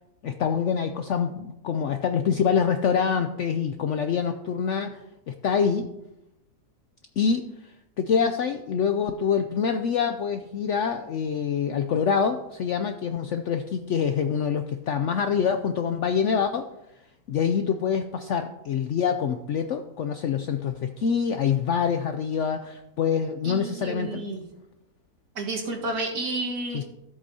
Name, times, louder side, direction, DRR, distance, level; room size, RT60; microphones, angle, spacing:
voice 1, 0.2-5.9 7.2-7.5 8.0-16.7 17.3-24.2 26.7-26.8, left 7 dB, 70° left, 7 dB, 0.7 m, -25 dB
voice 2, 23.4-24.4 25.4-26.8, right 2 dB, 70° right, 0 dB, 2.1 m, -31 dB
14.0 x 8.0 x 2.8 m, 0.90 s
omnidirectional pair, 1.7 m